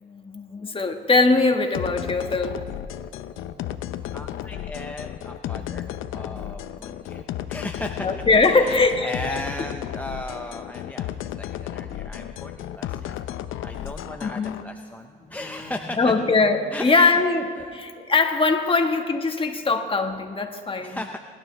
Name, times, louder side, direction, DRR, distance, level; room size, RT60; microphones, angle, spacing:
voice 1, 0.0-2.5 5.6-6.4 8.0-9.4 14.2-14.5 15.3-21.0, left 3 dB, 25° left, 4 dB, 1.6 m, -22 dB
sound 1, 1.7-14.6, left 11 dB, 85° left, 0.7 m, -34 dB
voice 2, 4.1-16.2 16.7-17.2 17.5-17.9 20.8-21.2, left 1 dB, 10° left, 4 dB, 0.6 m, -37 dB
28.5 x 12.0 x 3.4 m, 2.1 s
cardioid pair, 90°, 20 cm